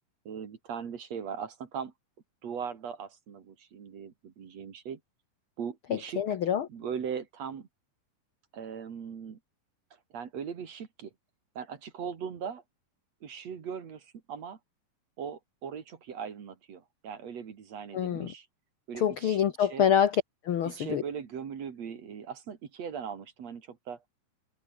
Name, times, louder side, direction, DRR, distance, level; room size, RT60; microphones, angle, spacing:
voice 1, 0.2-1.9 2.4-5.0 5.6-6.2 6.7-7.7 8.5-9.4 10.1-11.1 11.5-12.6 13.2-14.6 15.2-18.5 18.9-19.9 20.6-24.0, right 7 dB, 50° right, 3.2 m, -39 dB
voice 2, 5.9-6.7 17.9-18.3 19.0-21.0, left 9 dB, 75° left, 1.2 m, -26 dB
omnidirectional pair, 4.0 m